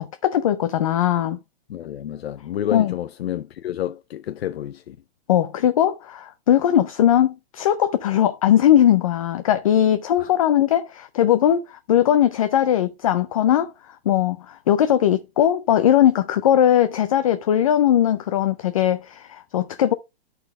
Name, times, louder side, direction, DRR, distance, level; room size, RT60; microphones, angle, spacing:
voice 1, 0.0-1.4 2.7-2.9 5.3-13.7 14.1-19.9, left 11 dB, 35° left, 0.4 m, -19 dB
voice 2, 1.7-5.0 10.2-10.3, left 11 dB, 90° left, 0.6 m, -29 dB
11.5 x 4.2 x 3.5 m
hypercardioid pair, 165°, 30 cm